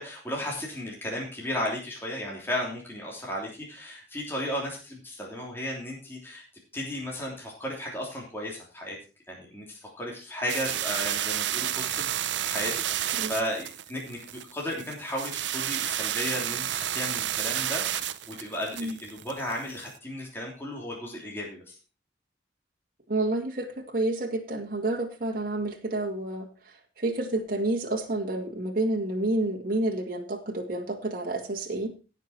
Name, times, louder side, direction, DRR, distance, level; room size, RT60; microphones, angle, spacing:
voice 1, 0.0-6.4 6.7-9.0 9.3-12.1 12.4-21.8, left 1 dB, 10° left, -2 dB, 3.0 m, -34 dB
sound 1, 10.5-19.9, right 11 dB, 85° right, 0.7 m, -31 dB
voice 2, 23.1-31.9, right 2 dB, 50° right, 1 dB, 1.9 m, -29 dB
17.5 x 6.2 x 4.4 m, 0.34 s
head